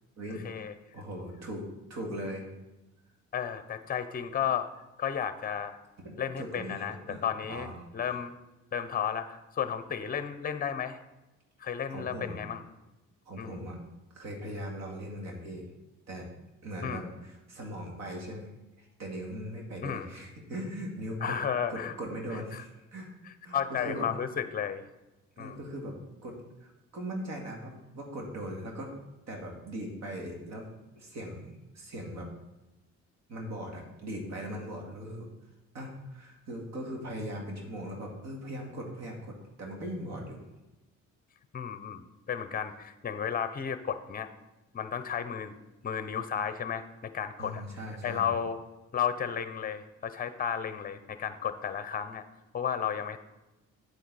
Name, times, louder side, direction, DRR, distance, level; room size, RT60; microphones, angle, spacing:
voice 1, 0.9-2.4 6.0-7.2 7.5-7.7 11.9-12.4 13.3-13.8 14.1-15.7 16.1-16.3 16.6-18.5 18.8-21.4 21.7-23.1 23.4-24.0 25.4-28.9 29.3-30.7 31.0-32.3 33.3-35.3 35.7-40.4 47.4-48.3, equal, 65° right, 0 dB, 2.5 m, -39 dB
voice 2, 3.3-4.7 5.0-5.8 6.2-7.7 7.9-8.3 8.7-11.0 11.6-12.6 13.4-13.6 16.8-17.0 19.8-20.1 21.2-22.0 22.3-22.6 23.2-24.9 25.4-25.6 41.5-44.3 44.7-45.5 45.8-47.6 48.0-48.6 48.9-52.2 52.5-53.2, left 8 dB, 30° left, 11 dB, 0.8 m, -33 dB
8.2 x 8.1 x 4.2 m, 1.0 s
cardioid pair, 100°, 30 cm